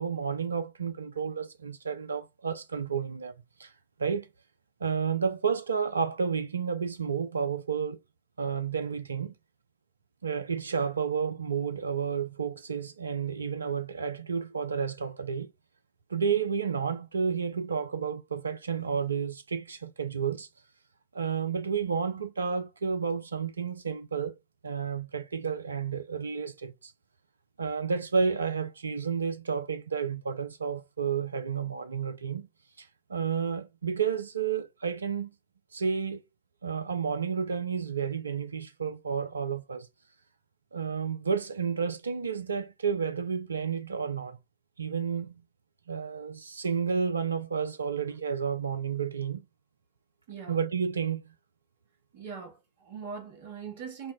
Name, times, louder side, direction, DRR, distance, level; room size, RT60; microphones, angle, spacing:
voice 1, 0.0-3.3 3.6-3.7 4.0-4.3 4.8-8.0 8.4-9.3 10.2-15.5 16.1-20.5 21.1-24.4 24.6-26.9 27.6-32.5 32.8-35.3 35.7-36.2 36.6-39.9 40.7-44.4 44.8-45.4 45.9-49.4 50.5-51.3, right 6 dB, 75° right, 0.4 m, -31 dB
voice 2, 50.3-50.6 52.1-54.1, right 6 dB, 55° right, 1.2 m, -41 dB
5.1 x 2.1 x 2.3 m
figure-of-eight pair, 90°, 0 cm